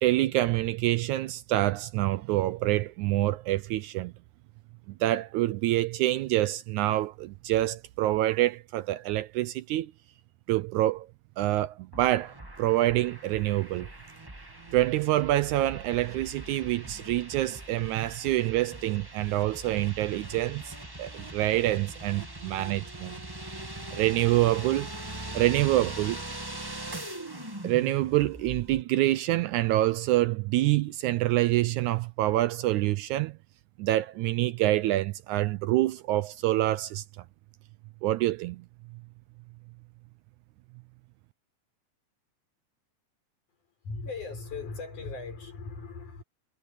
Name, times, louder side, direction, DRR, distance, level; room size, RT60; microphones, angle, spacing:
voice 1, 0.0-4.1 5.0-9.9 10.5-11.1 11.4-13.9 14.7-23.2 23.9-24.9 25.3-26.2 27.6-33.4 33.8-37.0 38.0-38.7, right 16 dB, 85° right, 1.7 m, -26 dB
sound 1, 11.9-28.8, right 1 dB, 15° right, 0.7 m, -41 dB
voice 2, 43.8-46.2, left 4 dB, 60° left, 7.4 m, -38 dB
omnidirectional pair, 4.0 m